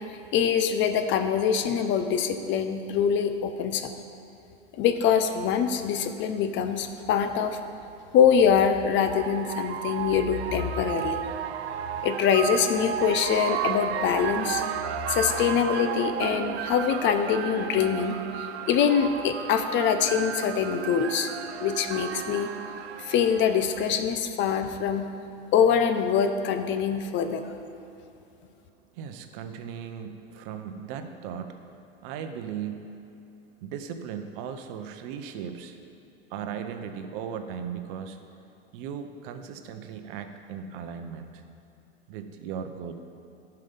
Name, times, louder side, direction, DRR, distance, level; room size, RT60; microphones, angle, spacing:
voice 1, 0.3-3.9 4.7-7.6 8.1-11.2 12.0-14.6 15.1-21.3 21.6-22.5 23.0-25.1 25.5-27.4, left 7 dB, 40° left, 8 dB, 0.6 m, -24 dB
sound 1, 6.8-6.9 8.3-23.9, right 9 dB, 90° right, 0.6 m, -33 dB
voice 2, 28.9-31.6 32.0-33.0 33.6-35.8 36.3-38.2 38.7-41.4 42.1-42.9, right 7 dB, 55° right, 8 dB, 0.8 m, -37 dB
10.5 x 5.8 x 5.3 m, 2.9 s
hypercardioid pair, 115°, 31 cm